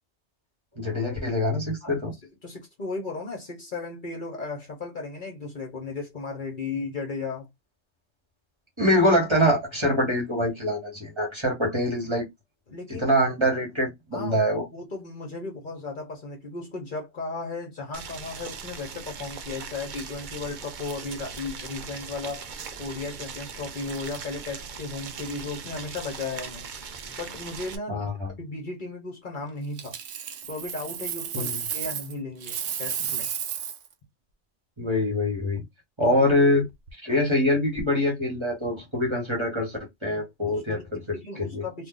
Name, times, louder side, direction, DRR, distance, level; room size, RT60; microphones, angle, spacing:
voice 1, 0.8-2.1 8.8-12.3 12.9-14.6 27.9-28.3 31.3-31.5 34.8-35.6 36.0-36.7 37.0-41.6, left 1 dB, 25° right, 1.4 m, -24 dB
voice 2, 2.4-7.5 12.7-13.1 14.1-14.4 14.7-22.5 22.8-26.7 27.2-28.0 28.4-30.0 30.5-33.3 36.0-36.1 40.5-40.8 41.1-41.9, left 3 dB, 50° left, 1.0 m, -35 dB
Boiling, 17.9-27.8, right 6 dB, 55° right, 0.7 m, -39 dB
Coin (dropping), 29.8-32.1 32.4-33.9 36.7-36.9, right 8 dB, 90° right, 0.9 m, -32 dB
2.6 x 2.6 x 3.8 m
omnidirectional pair, 1.1 m